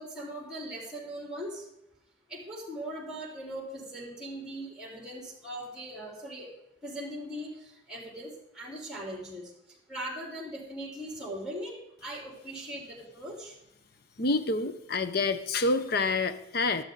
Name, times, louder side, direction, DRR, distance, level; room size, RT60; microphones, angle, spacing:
voice 1, 0.0-1.6 2.3-6.5 6.8-9.5 9.9-11.7 12.0-13.5, right 1 dB, 5° right, -2 dB, 3.7 m, -40 dB
voice 2, 14.2-16.8, left 3 dB, 50° left, 11 dB, 0.7 m, -27 dB
13.5 x 11.5 x 3.9 m, 0.84 s
head